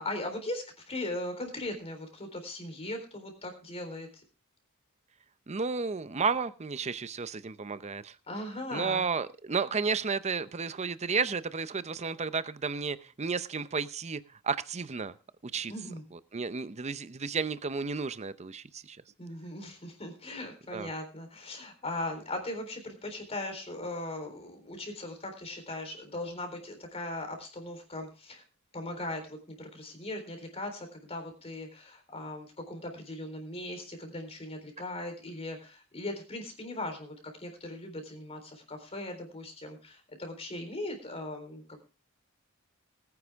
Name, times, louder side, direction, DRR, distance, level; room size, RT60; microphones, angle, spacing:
voice 1, 0.0-4.2 8.3-9.0 15.7-16.0 19.2-28.4 28.7-37.1 37.4-41.8, left 1 dB, 30° left, 5 dB, 3.8 m, -39 dB
voice 2, 5.5-8.2 8.7-15.1 15.4-15.7 16.1-19.0 20.7-20.9, right 5 dB, 30° right, 14 dB, 0.6 m, -32 dB
20.0 x 9.7 x 3.5 m, 0.34 s
head